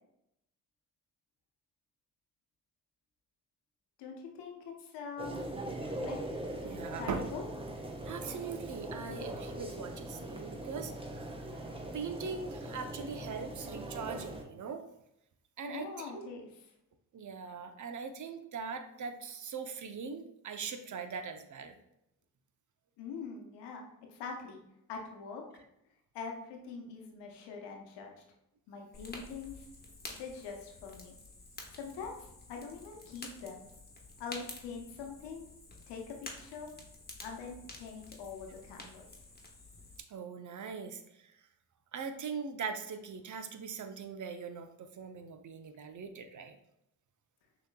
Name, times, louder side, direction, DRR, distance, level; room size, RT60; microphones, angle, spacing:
voice 1, 4.0-5.3 6.0-6.2 7.0-7.5 15.7-16.7 23.0-23.8 24.1-24.6 24.9-25.4 26.1-28.1 28.7-29.7 30.1-31.2 31.7-33.7 34.2-35.5 35.9-36.7 37.2-39.1, left 5 dB, 80° left, 1 dB, 1.0 m, -43 dB
sound 1, 5.2-14.4, right 1 dB, 15° right, 0.9 m, -41 dB
voice 2, 6.6-7.2 8.0-11.4 11.9-14.8 15.6-16.3 17.1-21.8 40.1-41.3 41.9-46.6, right 5 dB, 45° right, 7 dB, 0.7 m, -41 dB
Fire, 28.9-40.0, left 2 dB, 25° left, 1.3 m, -50 dB
6.3 x 3.0 x 2.2 m, 0.80 s
supercardioid pair, 50°, 41 cm